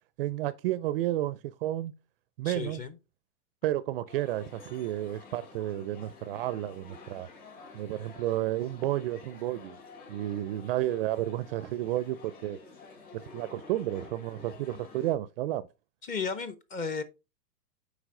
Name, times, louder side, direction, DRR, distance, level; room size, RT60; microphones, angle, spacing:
voice 1, 0.2-1.9 2.4-2.8 3.6-7.3 7.7-9.8 10.1-12.6 13.1-15.7, right 14 dB, 40° right, 0.5 m, -31 dB
voice 2, 2.4-2.9 16.0-17.0, left 5 dB, 15° left, 0.7 m, -34 dB
sound 1, 4.1-15.2, left 4 dB, 70° left, 4.7 m, -50 dB
8.2 x 5.0 x 3.7 m
hypercardioid pair, 130°, 46 cm